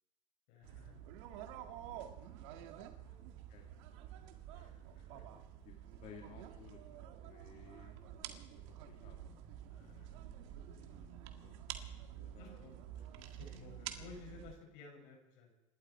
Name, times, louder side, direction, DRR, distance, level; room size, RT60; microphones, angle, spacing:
voice 1, 0.5-1.0 2.6-3.2 4.5-5.4 7.8-7.9 9.7-10.2 12.4-15.5, left 5 dB, 65° left, 2 dB, 6.0 m, -57 dB
sound 1, 0.6-14.5, right 10 dB, 70° right, 1.9 m, -49 dB
voice 2, 1.3-2.3 2.7-2.8 3.0-3.8 5.7-7.9 8.7-9.3 11.4-11.6 12.1-12.6, left 7 dB, 45° left, 1 dB, 2.3 m, -59 dB
Car / Engine starting / Idling, 10.3-13.8, left 1 dB, 15° left, 6.0 m, -70 dB
27.0 x 12.5 x 4.3 m, 0.96 s
supercardioid pair, 120°, 17 cm